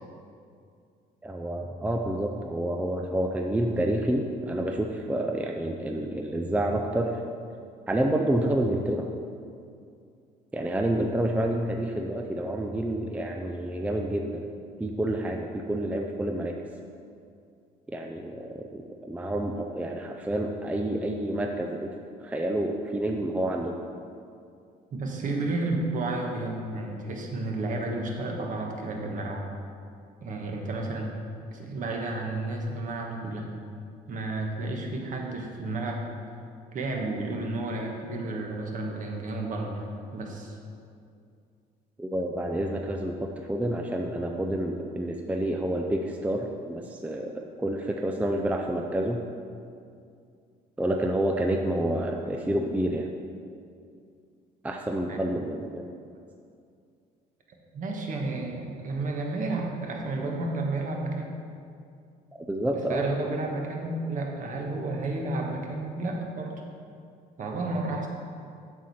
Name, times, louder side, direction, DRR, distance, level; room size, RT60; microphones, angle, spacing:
voice 1, 1.2-7.2 7.9-9.1 10.5-14.4 14.8-16.5 17.9-23.8 42.0-49.2 50.8-53.1 54.6-55.8 62.5-63.1, right 1 dB, 10° right, 2 dB, 0.4 m, -29 dB
voice 2, 24.9-29.4 30.2-31.1 31.5-33.5 34.1-36.0 36.7-39.9 40.1-40.6 55.1-55.2 57.7-61.3 62.7-66.5 67.4-68.1, right 2 dB, 50° right, 0 dB, 1.4 m, -31 dB
7.6 x 6.4 x 4.2 m, 2.4 s
cardioid pair, 110°, 17 cm